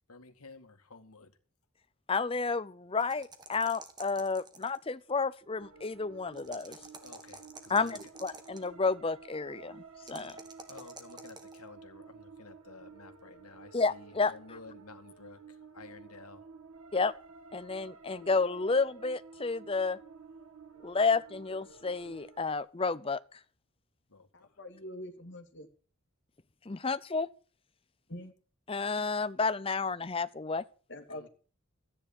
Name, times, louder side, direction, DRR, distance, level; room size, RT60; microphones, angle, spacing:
voice 1, 0.1-1.3 7.0-8.0 10.1-10.3 10.7-16.5 24.1-24.6 31.1-31.3, left 3 dB, 85° left, 2.0 m, -52 dB
voice 2, 2.1-6.8 7.7-10.4 13.7-14.3 16.9-17.1 17.5-20.0 20.8-23.2 26.7-27.3 28.7-30.6, left 4 dB, 25° left, 0.6 m, -31 dB
sound 1, 3.0-4.9 6.3-8.7 10.0-11.6, right 3 dB, 20° right, 1.6 m, -49 dB
sound 2, 5.6-22.6, right 5 dB, 80° right, 2.1 m, -52 dB
voice 3, 24.3-25.7 28.1-28.3 30.9-31.3, left 1 dB, 55° left, 2.3 m, -44 dB
14.0 x 9.8 x 7.2 m
head